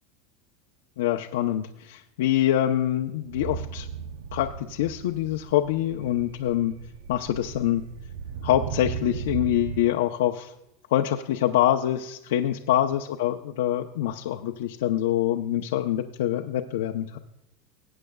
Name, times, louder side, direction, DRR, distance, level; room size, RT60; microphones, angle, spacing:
voice 1, 1.0-3.9 4.3-6.7 7.1-7.8 8.4-10.5 10.9-17.2, left 12 dB, 80° left, 2 dB, 0.7 m, -25 dB
sound 1, 3.2-9.9, right 7 dB, 80° right, 0.7 m, -36 dB
19.5 x 9.0 x 2.3 m, 0.87 s
supercardioid pair, 160°, 0 cm